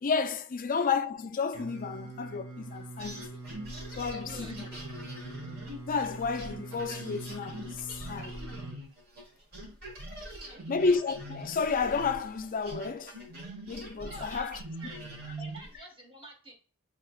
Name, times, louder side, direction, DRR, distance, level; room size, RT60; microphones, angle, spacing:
voice 1, 0.0-3.2 3.9-4.6 5.8-8.4 10.7-13.1 13.7-14.6, left 5 dB, 40° left, 0.4 m, -31 dB
Singing, 1.5-8.8, right 2 dB, 85° right, 1.1 m, -44 dB
sound 1, 3.0-9.3 9.5-15.8, right 1 dB, 45° right, 1.4 m, -43 dB
voice 2, 4.0-4.8 10.2-10.6 14.0-14.5 14.8-15.0 15.4-16.5, right 1 dB, 25° right, 1.3 m, -48 dB
5.6 x 2.9 x 2.3 m
head